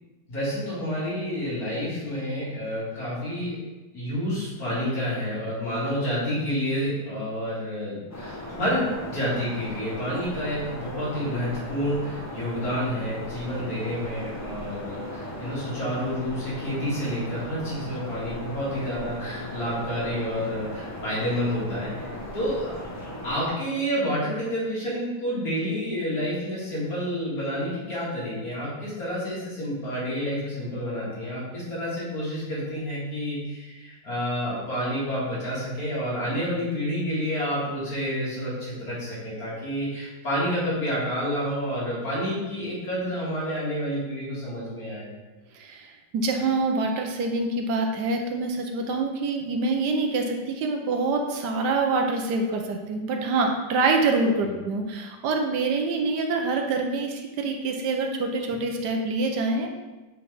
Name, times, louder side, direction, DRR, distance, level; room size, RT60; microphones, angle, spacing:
voice 1, 0.3-3.6 3.9-22.1 22.3-22.7 23.2-45.1 54.4-54.5, equal, 55° left, -8 dB, 2.6 m, -29 dB
sound 1, 8.1-23.5, left 1 dB, 20° left, 0.4 m, -37 dB
voice 2, 46.1-59.8, right 3 dB, 75° right, 3 dB, 1.2 m, -25 dB
7.8 x 3.8 x 3.4 m, 1.2 s
omnidirectional pair, 1.9 m